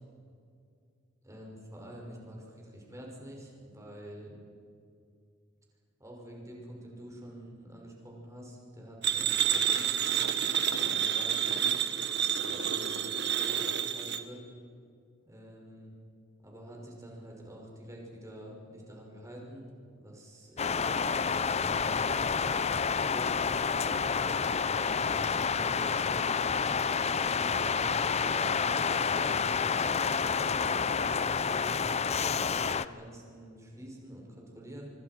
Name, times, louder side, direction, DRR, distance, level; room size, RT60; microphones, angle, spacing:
voice 1, 1.2-4.4 6.0-11.8 12.4-14.4 15.3-15.9 16.4-19.7 20.0-22.1 22.6-24.1 24.8-26.4 27.0-29.4 29.7-31.7 32.1-34.9, equal, 15° right, -1 dB, 6.0 m, -47 dB
sound 1, 9.0-14.2, right 9 dB, 60° right, 1.4 m, -29 dB
sound 2, 20.6-32.9, left 6 dB, 35° left, 0.6 m, -29 dB
26.0 x 24.0 x 6.1 m, 2.4 s
head